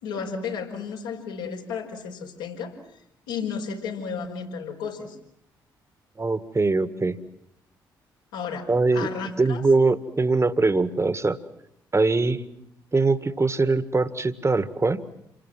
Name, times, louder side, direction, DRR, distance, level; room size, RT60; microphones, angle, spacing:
voice 1, 0.0-2.8 3.3-5.2 8.3-9.6, left 6 dB, 75° left, -1 dB, 5.2 m, -33 dB
voice 2, 6.2-7.2 8.7-9.1 9.4-11.4 11.9-12.4 12.9-15.1, right 3 dB, 25° right, 13 dB, 2.0 m, -22 dB
29.0 x 22.5 x 7.6 m, 0.77 s
figure-of-eight pair, 40°, 11 cm